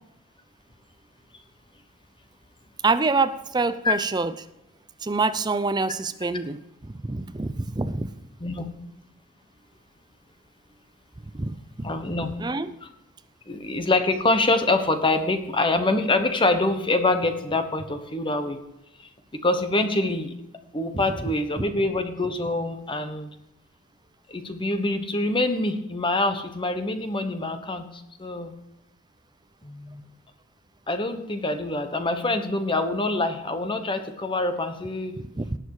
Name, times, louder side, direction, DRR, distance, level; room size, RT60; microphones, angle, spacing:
voice 1, 2.8-4.3 5.0-8.1 11.3-11.9 12.4-12.7 20.9-21.0 35.4-35.6, right 3 dB, 20° right, 0.5 m, -26 dB
voice 2, 11.8-12.3 12.8-12.9 13.5-18.6 19.4-20.3 20.7-23.3 24.3-27.9 28.2-28.5 29.6-30.0 30.9-35.2, left 2 dB, 20° left, 1.1 m, -25 dB
18.5 x 6.3 x 4.8 m
head